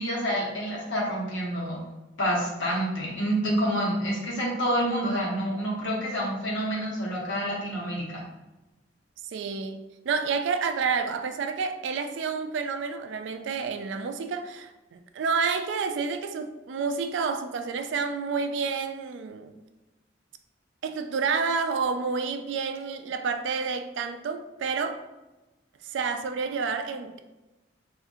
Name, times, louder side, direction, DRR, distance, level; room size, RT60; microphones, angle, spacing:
voice 1, 0.0-1.8 2.2-8.2, equal, 85° left, -4 dB, 1.0 m, -28 dB
voice 2, 9.3-19.5 20.8-25.0 25.8-27.2, right 5 dB, 75° right, 8 dB, 0.3 m, -29 dB
3.6 x 2.5 x 2.5 m, 1.1 s
head